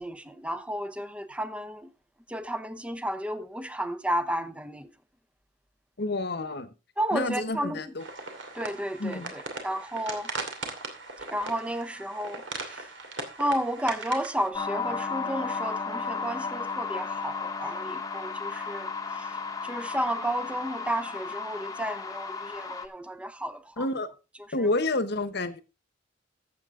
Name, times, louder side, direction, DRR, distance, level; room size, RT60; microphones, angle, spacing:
voice 1, 0.0-1.9 2.3-4.9 7.0-7.8 8.5-9.2 9.6-10.3 11.3-12.4 12.7-12.9 13.4-18.9 19.2-19.3 19.6-23.8, right 1 dB, 5° right, 0.8 m, -32 dB
voice 2, 6.0-6.7 7.1-8.0 9.0-9.3 23.8-24.1 24.5-25.6, left 2 dB, 60° left, 1.1 m, -29 dB
sound 1, 8.0-14.5, right 3 dB, 70° right, 2.6 m, -39 dB
sound 2, 14.5-22.9, left 5 dB, 20° left, 1.1 m, -34 dB
13.5 x 8.0 x 3.8 m
head